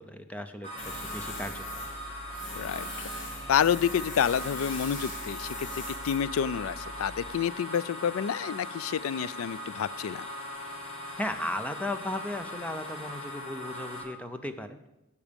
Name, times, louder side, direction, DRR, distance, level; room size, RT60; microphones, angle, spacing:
voice 1, 0.0-1.8 11.2-14.8, left 1 dB, 5° left, 8 dB, 0.6 m, -36 dB
sound 1, 0.6-14.0, equal, 30° left, 2.9 m, -40 dB
Tools, 0.8-7.3, left 1 dB, 65° left, 2.8 m, -41 dB
voice 2, 2.6-2.9 3.5-5.7 6.0-10.2, left 8 dB, 85° left, 20 dB, 0.3 m, -28 dB
12.0 x 8.4 x 5.2 m, 0.96 s
head